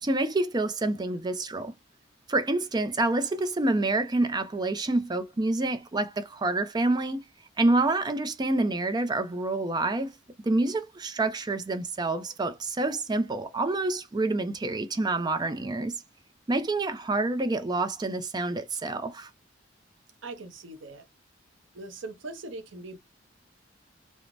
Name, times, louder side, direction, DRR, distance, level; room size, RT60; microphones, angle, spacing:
voice 1, 0.0-1.7 2.3-7.2 7.6-10.1 10.4-16.0 16.5-19.3, right 2 dB, 20° right, 0.4 m, -27 dB
voice 2, 20.2-21.0 21.7-23.0, right 2 dB, 85° right, 0.7 m, -40 dB
3.1 x 2.1 x 2.4 m
head